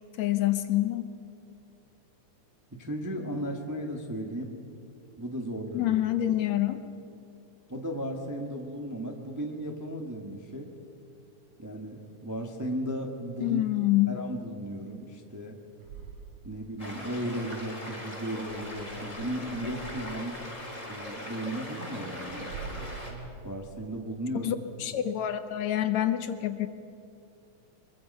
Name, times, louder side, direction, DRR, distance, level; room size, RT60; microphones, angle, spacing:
voice 1, 0.2-1.1 5.7-6.8 13.4-14.2 24.4-26.7, left 13 dB, 70° left, 10 dB, 1.9 m, -27 dB
voice 2, 2.8-4.5 5.2-6.0 7.7-10.7 11.6-13.6 14.1-15.6 16.4-20.5 20.8-22.5 23.4-24.5 24.9-25.0, right 1 dB, 10° right, 1 dB, 0.8 m, -35 dB
sound 1, 15.8-16.9 18.4-20.2 21.0-21.4 21.7-21.8 22.1-23.4, right 5 dB, 80° right, 3.1 m, -44 dB
sound 2, 16.8-23.1, left 1 dB, 10° left, 3.8 m, -40 dB
24.5 x 22.5 x 5.6 m, 2.6 s
omnidirectional pair, 3.6 m